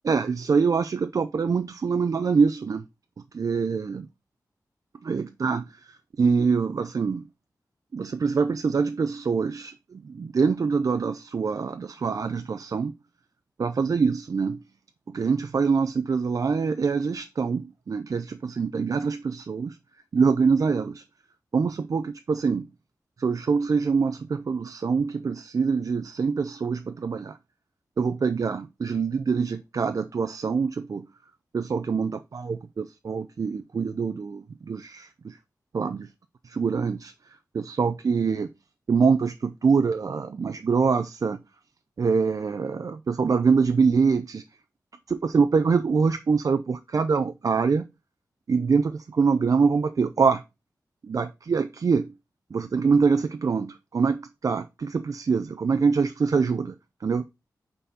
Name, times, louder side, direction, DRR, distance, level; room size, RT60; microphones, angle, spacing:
voice 1, 0.0-2.8 3.3-4.1 5.0-7.3 7.9-12.9 13.6-14.6 15.1-19.8 20.1-21.0 21.5-22.6 23.2-27.4 28.0-31.0 31.5-35.4 35.7-36.1 36.4-37.1 37.5-38.5 38.9-41.4 42.0-44.4 45.1-47.9 48.5-50.4 51.0-52.1 52.5-56.8 57.0-57.2, right 5 dB, 55° right, 0.4 m, -24 dB
5.6 x 4.0 x 4.1 m
wide cardioid pair, 90°, 7 cm